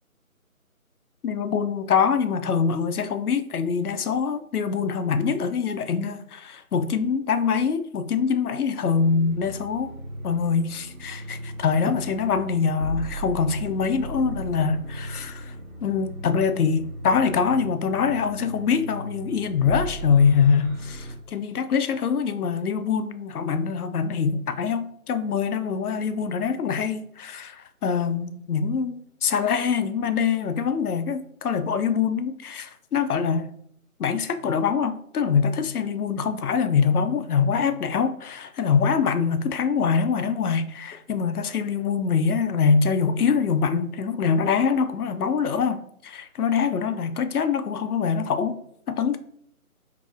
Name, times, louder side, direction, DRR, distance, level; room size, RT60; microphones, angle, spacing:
voice 1, 1.2-9.9 10.2-15.6 15.8-33.5 34.0-48.6 48.9-49.2, left 6 dB, 85° left, 0.5 m, -24 dB
sound 1, 8.8-21.2, right 1 dB, 65° right, 1.0 m, -36 dB
4.0 x 2.7 x 2.4 m
figure-of-eight pair, 175°, 44 cm